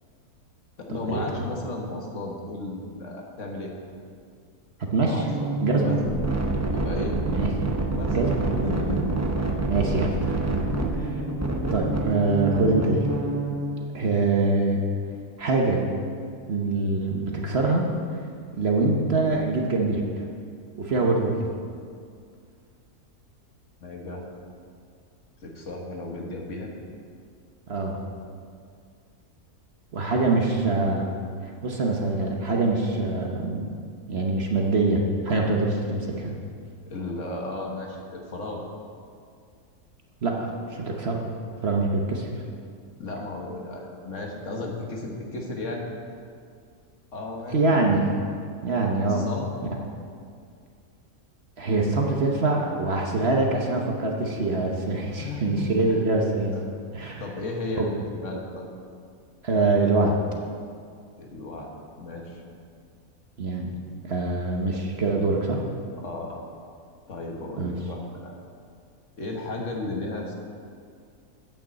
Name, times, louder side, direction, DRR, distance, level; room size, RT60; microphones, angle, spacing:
voice 1, 0.8-3.7 5.0-5.5 5.8-6.0 6.7-7.2 7.9-9.4 9.8-10.0 10.7-11.0 23.8-24.2 25.4-26.7 36.9-38.6 43.0-45.8 47.1-47.8 49.1-49.5 55.2-56.0 56.5-56.7 57.2-58.7 61.2-61.7 62.0-62.4 66.0-66.4 67.1-68.3 69.2-70.3, left 2 dB, 55° left, 0 dB, 1.6 m, -34 dB
voice 2, 4.8-5.2 5.6-6.0 7.3-7.5 8.1-8.4 9.7-10.5 11.7-13.1 13.9-14.8 15.4-15.9 16.5-17.9 18.6-20.0 20.8-21.5 27.7-28.0 29.9-31.1 31.4-33.7 34.1-36.3 40.2-42.3 47.5-48.0 48.6-49.3 49.7-49.8 51.6-56.5 56.9-57.2 57.8-57.9 59.4-60.2 63.4-63.7 64.0-65.6 67.6-67.7, right 3 dB, 50° right, 0 dB, 1.1 m, -24 dB
sound 1, 5.2-13.8, right 2 dB, 20° right, 0.5 m, -27 dB
8.5 x 6.6 x 7.6 m, 2.2 s
omnidirectional pair, 1.6 m